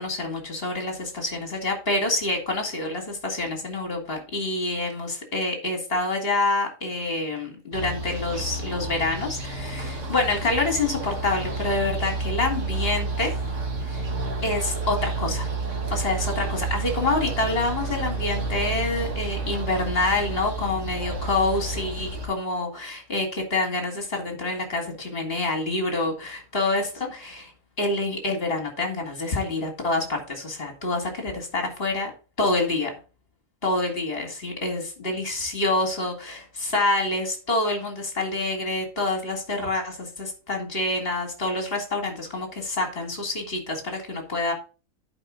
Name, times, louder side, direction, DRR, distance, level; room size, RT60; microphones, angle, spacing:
voice 1, 0.0-13.4 13.9-14.0 14.4-15.5 15.9-27.5 27.8-32.1 32.4-32.9 33.6-44.5, left 2 dB, 45° left, 3 dB, 2.4 m, -27 dB
sound 1, 7.7-22.3, right 3 dB, 60° right, 1.9 m, -30 dB
10.5 x 5.1 x 3.9 m, 0.34 s
omnidirectional pair, 1.4 m